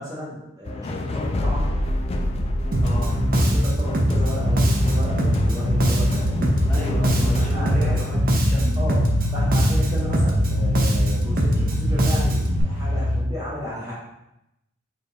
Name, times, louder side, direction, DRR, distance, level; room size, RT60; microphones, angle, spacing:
voice 1, 0.0-1.7 3.4-6.9 7.4-8.0 8.7-9.0 9.3-13.9, left 1 dB, 15° right, -8 dB, 1.0 m, -34 dB
sound 1, 0.7-7.6, left 1 dB, 30° left, 0.3 m, -28 dB
Bass guitar, 2.7-12.6, equal, 45° right, 0.7 m, -21 dB
voice 2, 2.8-3.4 6.6-9.0, equal, 10° left, -8 dB, 1.2 m, -35 dB
sound 2, 4.2-13.2, left 1 dB, 70° left, 1.0 m, -27 dB
4.4 x 3.3 x 3.4 m, 0.86 s
head